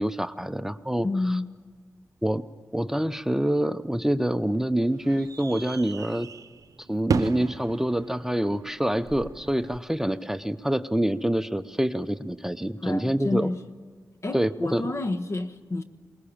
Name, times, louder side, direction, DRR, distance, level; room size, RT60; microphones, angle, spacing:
voice 1, 0.0-1.1 2.2-2.4 2.7-6.3 6.9-13.5 14.3-14.9, right 1 dB, 5° right, 0.7 m, -26 dB
voice 2, 1.0-1.5 12.8-13.6 14.2-15.8, left 2 dB, 50° left, 1.3 m, -29 dB
sound 1, 3.8-9.8, right 6 dB, 70° right, 0.7 m, -35 dB
20.5 x 20.0 x 8.7 m
cardioid pair, 50°, 6 cm